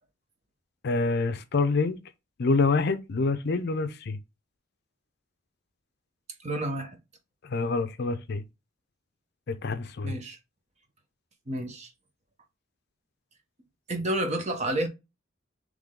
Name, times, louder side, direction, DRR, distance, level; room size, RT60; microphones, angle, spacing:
voice 1, 0.8-2.0 2.4-4.2 7.4-8.4 9.5-10.2, left 3 dB, 55° left, 0.5 m, -26 dB
voice 2, 6.4-7.0 10.0-10.4 11.5-11.9 13.9-14.9, right 1 dB, 35° right, 0.9 m, -30 dB
3.6 x 3.2 x 3.6 m
head